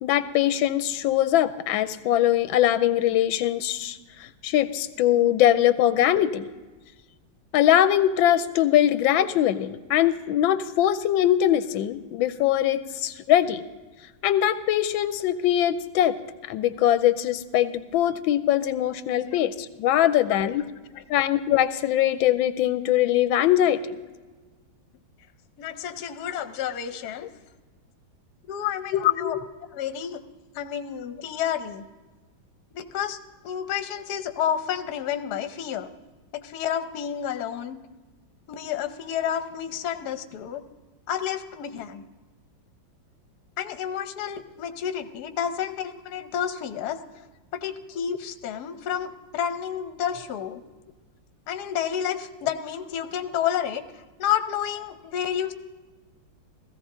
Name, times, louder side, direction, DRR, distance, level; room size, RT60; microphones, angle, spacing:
voice 1, 0.0-6.5 7.5-13.6 14.2-16.2 16.5-20.6 21.1-24.0 29.2-29.4, left 12 dB, 90° left, 12 dB, 1.4 m, -22 dB
voice 2, 25.6-27.3 28.5-29.4 29.7-30.2 30.5-31.8 32.7-33.2 33.4-35.9 36.3-37.8 38.5-40.6 41.1-42.0 43.6-47.3 47.5-50.6 51.5-55.5, left 9 dB, 60° left, 9 dB, 1.2 m, -30 dB
16.5 x 15.0 x 3.8 m, 1.3 s
omnidirectional pair, 2.1 m